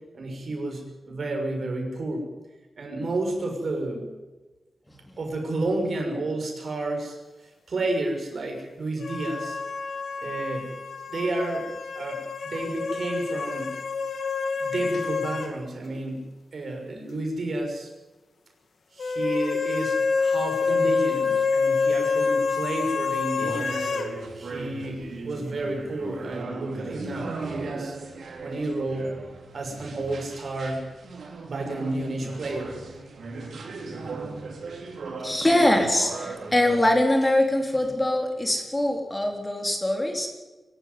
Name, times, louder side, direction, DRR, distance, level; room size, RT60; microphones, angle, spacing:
voice 1, 0.1-2.2 2.8-4.1 5.2-7.2 7.7-9.6 10.2-10.7 11.1-11.7 12.0-13.7 14.6-16.2 16.5-17.9 18.9-23.9 24.3-28.0 28.4-29.1 29.5-30.8 31.4-32.8, right 2 dB, 60° right, 2 dB, 6.1 m, -31 dB
sound 1, 9.0-15.6 15.8-15.9 19.0-24.1, left 5 dB, 75° left, 2.5 m, -27 dB
sound 2, 23.4-37.0, right 3 dB, 80° right, 4.0 m, -37 dB
voice 2, 35.2-40.3, left 1 dB, 15° left, 3 dB, 3.6 m, -23 dB
23.5 x 12.0 x 9.6 m, 1.2 s
wide cardioid pair, 95°, 0 cm